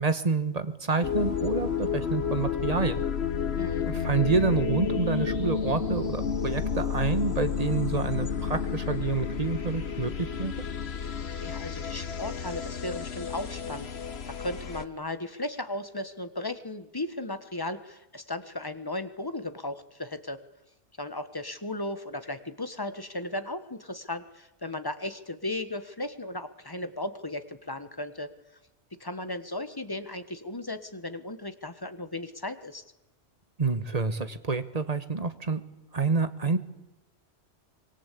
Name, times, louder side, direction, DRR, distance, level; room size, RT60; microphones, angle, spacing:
voice 1, 0.0-3.0 3.9-10.5 33.6-35.6 35.9-36.6, right 4 dB, 35° right, 11 dB, 1.5 m, -28 dB
sound 1, 1.0-14.9, left 6 dB, 65° left, 1.5 m, -31 dB
voice 2, 3.6-3.9 11.4-20.4 21.0-28.3 29.0-32.8, left 1 dB, 20° left, 10 dB, 1.4 m, -36 dB
25.0 x 23.0 x 8.5 m, 0.93 s
omnidirectional pair, 1.2 m